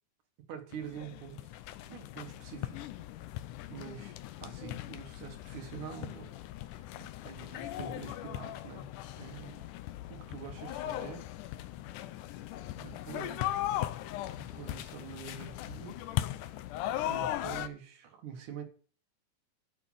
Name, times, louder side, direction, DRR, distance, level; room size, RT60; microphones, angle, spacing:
voice 1, 0.5-1.5 1.9-2.8 3.7-6.3 6.6-6.8 7.2-8.9 9.2-9.7 10.1-11.3 12.8-13.7 14.4-16.0 17.0-18.6, right 8 dB, 75° right, 3.0 m, -45 dB
sound 1, 0.7-17.7, left 13 dB, 85° left, 2.2 m, -38 dB
12.5 x 6.3 x 5.6 m
omnidirectional pair, 3.5 m